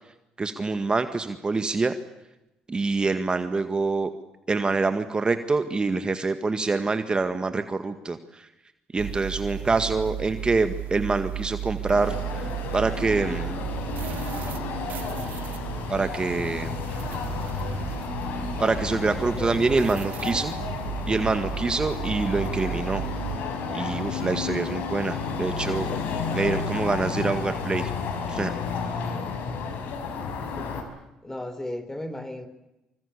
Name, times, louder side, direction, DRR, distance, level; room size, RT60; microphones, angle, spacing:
voice 1, 0.4-1.9 2.7-4.1 4.5-8.5 8.9-13.5 15.9-16.8 18.6-20.6 21.1-23.0 23.7-25.9 26.3-27.9 28.3-28.5, right 3 dB, 30° right, 9 dB, 1.9 m, -26 dB
sound 1, 9.0-23.4, right 12 dB, 65° right, 2.3 m, -35 dB
voice 2, 9.6-10.0 19.2-20.1 29.0-29.4 30.4-30.9 31.2-32.5, left 1 dB, 15° left, 12 dB, 4.4 m, -37 dB
sound 2, 11.8-30.8, left 5 dB, 70° left, 5.5 m, -32 dB
26.0 x 25.5 x 8.5 m, 0.94 s
hypercardioid pair, 60°, 3 cm